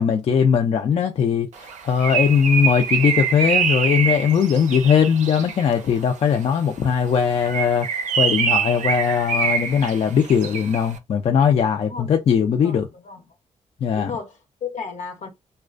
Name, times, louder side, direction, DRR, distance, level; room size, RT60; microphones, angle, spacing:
voice 1, 0.0-12.9 13.8-14.1, left 7 dB, 50° left, 0.4 m, -20 dB
Bird, 1.6-5.7 7.3-10.9, right 6 dB, 75° right, 0.5 m, -24 dB
voice 2, 11.9-13.2 13.9-15.3, left 5 dB, 75° left, 0.9 m, -35 dB
2.4 x 2.2 x 2.4 m
cardioid pair, 95°, 13 cm